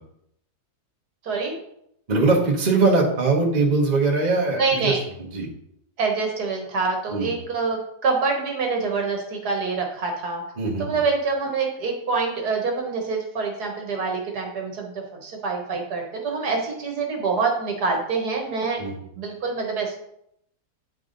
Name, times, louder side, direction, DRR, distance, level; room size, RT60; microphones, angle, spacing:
voice 1, 1.2-1.5 4.5-5.0 6.0-10.4 10.8-18.8 19.2-20.0, right 4 dB, 65° right, 2 dB, 1.7 m, -26 dB
voice 2, 2.1-5.5 7.1-7.3 10.6-11.0 18.8-18.9, right 3 dB, 25° right, -2 dB, 1.4 m, -21 dB
9.1 x 4.7 x 3.9 m, 0.75 s
omnidirectional pair, 1.8 m